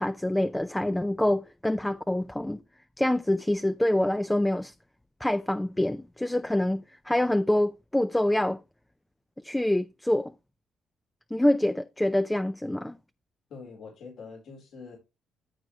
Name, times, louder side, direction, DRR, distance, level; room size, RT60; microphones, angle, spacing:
voice 1, 0.0-2.6 3.0-4.7 5.2-8.6 9.4-10.3 11.3-13.0, left 1 dB, 10° left, 0.4 m, -26 dB
voice 2, 13.5-15.0, left 4 dB, 70° left, 4.0 m, -44 dB
13.5 x 4.8 x 3.2 m
cardioid pair, 90°, 0 cm